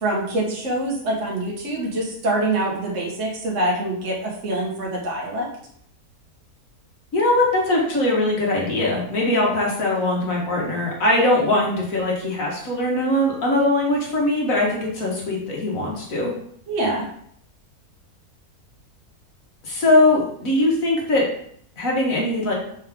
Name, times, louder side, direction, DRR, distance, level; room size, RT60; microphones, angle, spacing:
voice 1, 0.0-5.5 16.7-17.1, right 1 dB, 50° right, -3 dB, 1.6 m, -25 dB
voice 2, 7.1-16.3 19.6-21.2 21.8-22.5, left 1 dB, 60° left, -2 dB, 2.0 m, -21 dB
6.5 x 4.7 x 3.6 m, 0.67 s
omnidirectional pair, 1.7 m